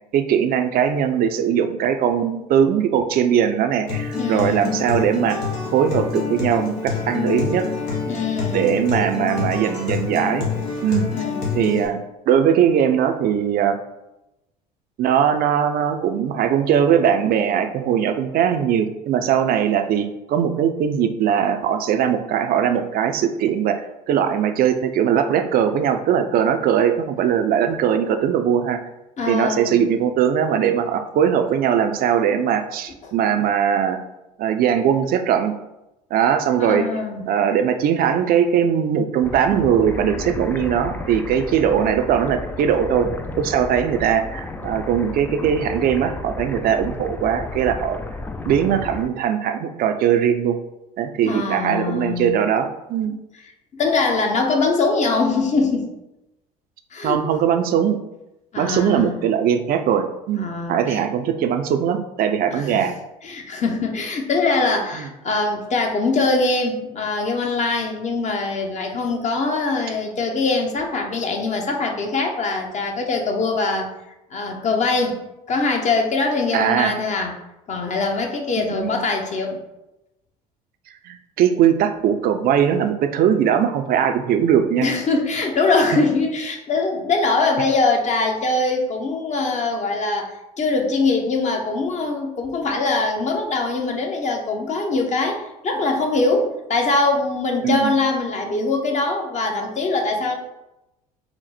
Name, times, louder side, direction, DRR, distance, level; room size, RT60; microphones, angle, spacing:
voice 1, 0.1-5.4 5.7-7.7 8.5-10.5 10.8-11.1 11.5-12.0 12.3-13.8 15.0-23.8 24.1-28.8 29.3-34.0 34.4-35.5 36.1-36.9 37.3-43.1 43.4-48.0 48.4-50.6 51.0-53.2 57.0-58.0 58.6-62.9 65.0-65.1 76.5-77.0 78.6-79.0 81.1-84.9 97.6-98.0, right 8 dB, 50° right, 7 dB, 0.5 m, -20 dB
Acoustic guitar, 3.9-11.9, left 5 dB, 75° left, 1.2 m, -27 dB
voice 2, 4.1-4.8 8.1-8.8 11.1-11.4 29.2-29.8 33.0-33.1 36.6-37.3 51.3-52.4 53.1-53.2 53.7-55.9 56.9-57.2 58.5-59.2 60.4-61.0 62.5-62.9 63.2-73.9 74.3-77.4 77.7-79.6 84.8-100.3, left 3 dB, 35° left, 2 dB, 0.8 m, -22 dB
sound 1, 39.2-49.1, left 3 dB, 10° left, 0.3 m, -33 dB
4.3 x 2.1 x 4.1 m, 0.93 s
hypercardioid pair, 65°, 20 cm